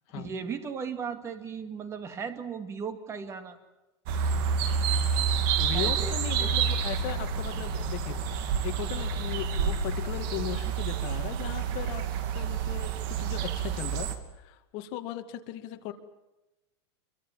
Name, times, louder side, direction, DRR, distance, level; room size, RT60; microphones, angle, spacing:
voice 1, 0.1-3.6 5.7-6.1 6.4-6.5, right 6 dB, 20° right, 9 dB, 2.4 m, -36 dB
sound 1, 4.1-14.2, right 6 dB, 50° right, 2.7 m, -29 dB
voice 2, 5.6-12.0 12.3-14.1 14.4-15.9, left 13 dB, 40° left, 6 dB, 2.4 m, -37 dB
28.0 x 23.5 x 7.5 m, 1.0 s
supercardioid pair, 155°, 15 cm